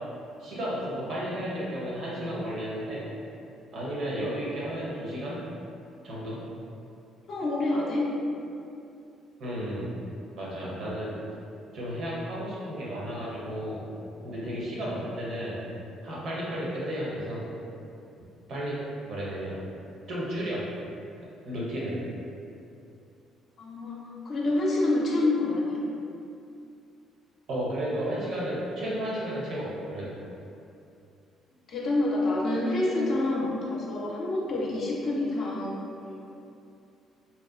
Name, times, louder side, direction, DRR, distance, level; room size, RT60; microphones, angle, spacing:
voice 1, 0.4-3.1 3.7-5.4 6.0-6.4 9.4-9.9 10.4-11.2 11.7-13.9 14.2-15.6 16.0-17.4 18.5-19.6 20.1-20.6 21.4-22.0 27.5-30.1, equal, 65° right, -6 dB, 0.7 m, -33 dB
voice 2, 7.3-8.1 23.6-25.8 31.7-36.2, left 2 dB, 60° left, -5 dB, 0.4 m, -27 dB
2.7 x 2.2 x 2.3 m, 2.6 s
hypercardioid pair, 60°, 0 cm